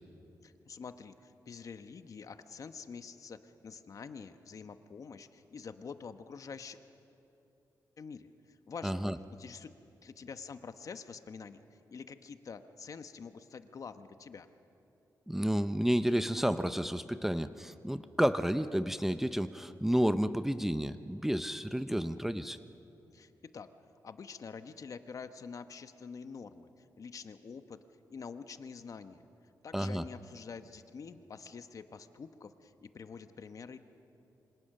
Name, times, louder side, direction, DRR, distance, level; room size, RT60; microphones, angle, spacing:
voice 1, 0.4-6.8 8.0-8.3 8.7-9.0 9.3-11.6 11.9-14.5 23.1-23.7 24.0-26.7 27.0-27.8 28.1-29.2 29.6-33.8, left 5 dB, 55° left, 10 dB, 1.0 m, -46 dB
voice 2, 8.8-9.2 15.3-22.6 29.7-30.0, equal, 5° right, 11 dB, 0.6 m, -31 dB
27.0 x 25.0 x 6.6 m, 2.9 s
wide cardioid pair, 115°, 7 cm